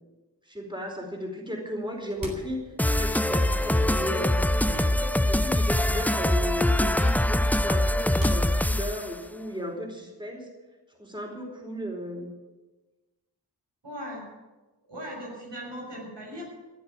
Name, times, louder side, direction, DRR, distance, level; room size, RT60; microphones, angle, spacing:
voice 1, 0.5-4.4 4.9-10.5 11.0-12.3, equal, 10° right, 1 dB, 4.4 m, -35 dB
sound 1, 1.8-5.9 6.1-9.4, right 1 dB, 50° right, 4.2 m, -43 dB
sound 2, 2.8-9.1, left 1 dB, 5° left, 0.5 m, -23 dB
voice 2, 13.8-14.3 14.9-16.4, equal, 85° right, -3 dB, 6.6 m, -38 dB
16.0 x 8.0 x 9.0 m, 1.2 s
cardioid pair, 45°, 41 cm